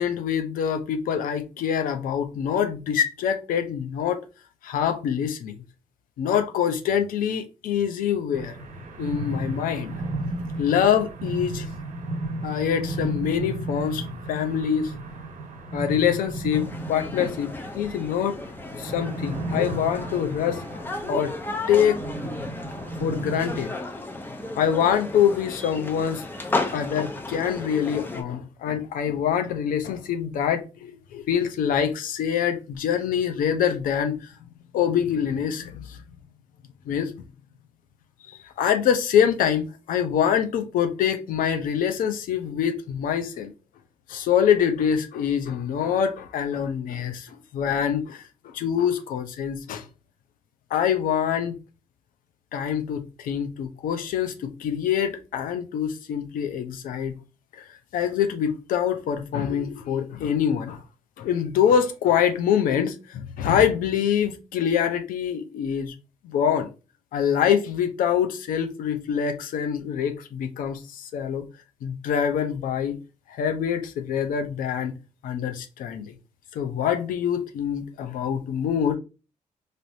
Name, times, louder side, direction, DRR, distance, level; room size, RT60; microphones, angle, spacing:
voice 1, 0.0-4.2 4.6-5.6 6.2-8.5 9.0-10.0 10.6-11.7 12.4-14.9 15.7-18.4 18.8-21.3 21.7-22.0 23.0-23.8 24.5-26.2 26.7-34.3 34.7-36.0 36.9-37.1 38.3-43.5 44.1-49.9 50.7-51.6 52.5-57.2 57.5-57.7 57.9-60.8 61.2-65.9 66.2-66.7 67.1-71.5 71.8-73.0 73.3-74.9 75.2-76.1 76.5-79.0, left 8 dB, 85° left, 0.6 m, -25 dB
sound 1, 8.3-23.6, right 2 dB, 70° right, 1.1 m, -34 dB
sound 2, 16.5-28.2, left 2 dB, 15° left, 0.6 m, -34 dB
3.4 x 2.6 x 2.6 m
cardioid pair, 85°, 14 cm